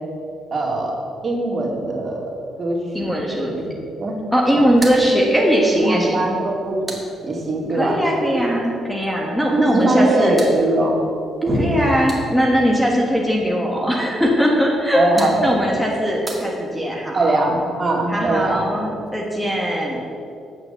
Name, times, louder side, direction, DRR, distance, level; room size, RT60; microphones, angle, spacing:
voice 1, 0.5-1.0 1.2-2.3 2.6-3.6 4.0-4.2 4.5-4.6 5.1-6.8 7.2-8.0 8.3-8.5 9.5-11.1 11.4-11.7 14.9-15.6 17.1-18.7, right 2 dB, 40° right, -2 dB, 2.4 m, -21 dB
voice 2, 2.9-3.5 4.3-6.2 7.7-10.5 11.5-17.6 18.1-20.0, equal, ahead, -2 dB, 1.4 m, -20 dB
sound 1, 4.7-7.8 9.8-12.7 14.7-17.1, right 2 dB, 20° right, 1.9 m, -39 dB
8.8 x 6.5 x 6.9 m, 2.5 s
cardioid pair, 90°, 0 cm